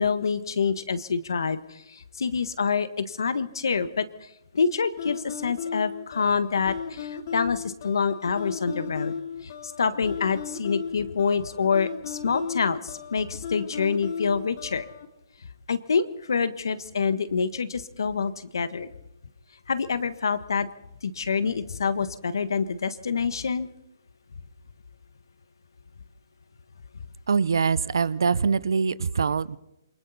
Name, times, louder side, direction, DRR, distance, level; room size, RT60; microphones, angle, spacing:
voice 1, 0.0-4.1 4.5-9.1 9.4-14.9 15.7-18.9 19.7-20.7 21.0-23.7, left 5 dB, 80° left, 13 dB, 1.4 m, -26 dB
sound 1, 5.0-15.1, left 6 dB, 45° left, 2.4 m, -36 dB
voice 2, 27.3-29.6, right 5 dB, 80° right, 19 dB, 0.9 m, -23 dB
27.5 x 23.0 x 4.2 m, 0.85 s
hypercardioid pair, 155°, 2 cm